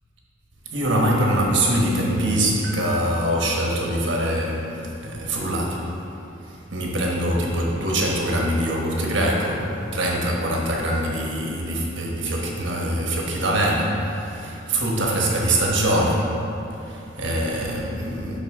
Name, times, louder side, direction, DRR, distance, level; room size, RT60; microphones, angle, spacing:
voice 1, 0.7-5.9 6.4-16.4 16.8-18.4, right 1 dB, 70° right, -2 dB, 1.2 m, -23 dB
11.5 x 4.1 x 3.7 m, 2.9 s
head